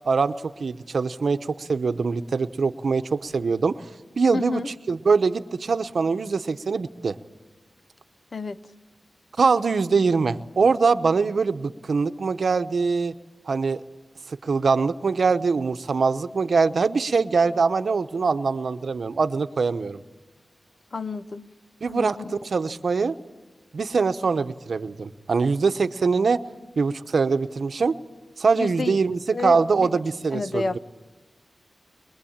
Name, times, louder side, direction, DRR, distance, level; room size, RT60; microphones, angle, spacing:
voice 1, 0.0-3.9 4.2-4.6 4.9-7.2 9.4-13.1 13.5-13.8 14.3-20.0 21.8-22.2 22.4-23.2 23.7-26.4 26.8-28.0 28.4-30.8, right 4 dB, 70° right, 10 dB, 0.9 m, -23 dB
voice 2, 4.3-4.7 8.3-8.6 20.9-21.5 21.9-22.3 28.6-29.0 29.3-30.0 30.3-30.8, left 3 dB, 50° left, 14 dB, 0.8 m, -30 dB
23.5 x 21.5 x 8.8 m, 1.3 s
wide cardioid pair, 90°, 0 cm